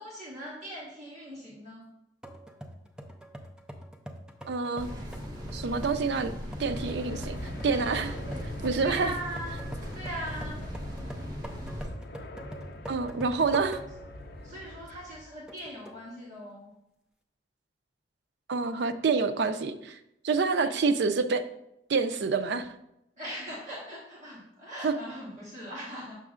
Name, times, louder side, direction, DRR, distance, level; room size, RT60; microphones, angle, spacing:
voice 1, 0.0-1.8 8.3-8.5 8.8-9.5 9.9-10.6 14.4-16.7 20.5-20.7 23.2-26.2, right 1 dB, 40° right, -6 dB, 1.4 m, -40 dB
sound 1, 2.2-14.2 14.6-14.7 15.5-16.1, equal, 5° right, 0.4 m, -44 dB
voice 2, 4.5-4.9 5.5-6.3 6.6-7.4 7.6-8.2 8.6-9.1 12.9-13.8 18.5-20.0 20.2-21.4 21.9-22.7 24.8-24.9, right 4 dB, 70° right, 9 dB, 0.4 m, -27 dB
sound 2, 4.8-11.9, equal, 20° right, 0.9 m, -39 dB
sound 3, 6.7-15.4, left 1 dB, 55° left, 0.5 m, -43 dB
6.7 x 6.1 x 2.4 m, 0.84 s
head